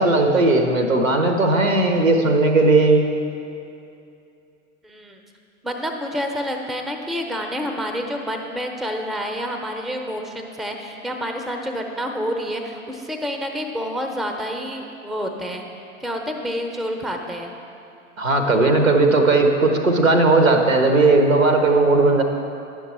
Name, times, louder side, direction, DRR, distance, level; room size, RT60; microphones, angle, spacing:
voice 1, 0.0-3.1 18.2-22.2, right 2 dB, 85° right, 4 dB, 0.9 m, -17 dB
voice 2, 4.8-5.2 5.6-15.6 16.0-17.5, equal, ahead, 3 dB, 0.6 m, -28 dB
10.5 x 6.1 x 4.2 m, 2.7 s
figure-of-eight pair, 75°, 39 cm